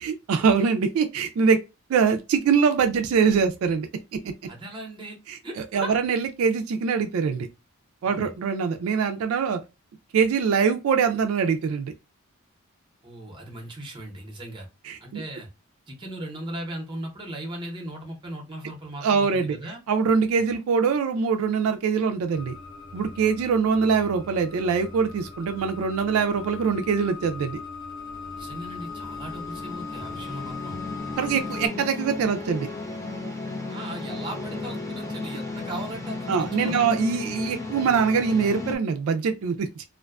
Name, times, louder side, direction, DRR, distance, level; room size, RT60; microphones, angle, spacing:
voice 1, 0.0-1.6 1.9-4.2 5.3-7.5 8.0-9.6 10.1-11.9 14.9-15.2 19.0-19.6 19.9-22.5 22.9-27.6 31.2-32.7 36.3-39.8, right 6 dB, 75° right, 0.3 m, -23 dB
voice 2, 4.5-5.2 5.4-6.0 8.0-8.3 13.0-14.7 15.0-15.5 15.9-19.8 20.4-20.5 28.4-30.8 33.7-36.9, right 1 dB, 20° right, 0.7 m, -37 dB
sound 1, 22.3-31.7, left 4 dB, 50° left, 1.0 m, -39 dB
sound 2, 28.0-38.8, left 3 dB, 15° left, 0.3 m, -35 dB
2.4 x 2.2 x 2.3 m
head